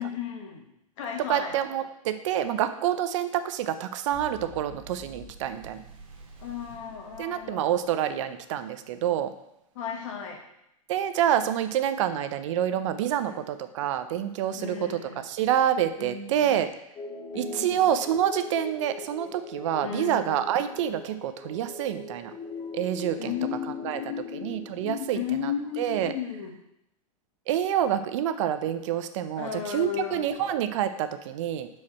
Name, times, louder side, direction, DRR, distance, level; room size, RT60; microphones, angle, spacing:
voice 1, 0.0-1.6 6.4-7.8 9.7-10.4 13.2-13.4 14.5-15.2 16.0-16.3 17.3-17.8 19.8-20.4 23.2-26.5 29.4-30.3, left 8 dB, 60° left, 3 dB, 1.5 m, -34 dB
voice 2, 1.3-5.8 7.2-9.3 10.9-15.0 15.2-16.7 17.3-22.3 22.7-23.3 23.8-24.0 24.4-25.5 25.8-26.1 27.5-31.7, right 10 dB, 60° right, 10 dB, 0.6 m, -27 dB
sound 1, 4.1-8.2, equal, 30° right, 1.5 m, -48 dB
sound 2, 17.0-25.3, left 3 dB, 20° left, 0.9 m, -41 dB
7.6 x 4.8 x 4.2 m, 0.81 s
supercardioid pair, 145°, 18 cm